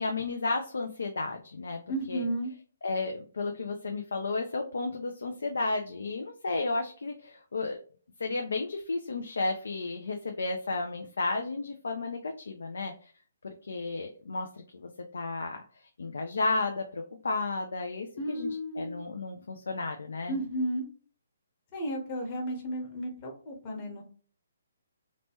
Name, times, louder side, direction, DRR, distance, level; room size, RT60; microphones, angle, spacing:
voice 1, 0.0-1.8 2.1-2.2 2.8-7.8 8.2-13.1 13.4-14.5 14.8-15.6 16.0-18.5 18.8-20.3, left 3 dB, 75° left, 4 dB, 0.4 m, -33 dB
voice 2, 1.9-2.5 18.2-19.1 20.3-20.9 21.7-24.0, right 1 dB, 30° left, 0 dB, 1.0 m, -33 dB
2.9 x 2.2 x 2.9 m, 0.41 s
hypercardioid pair, 145°, 0 cm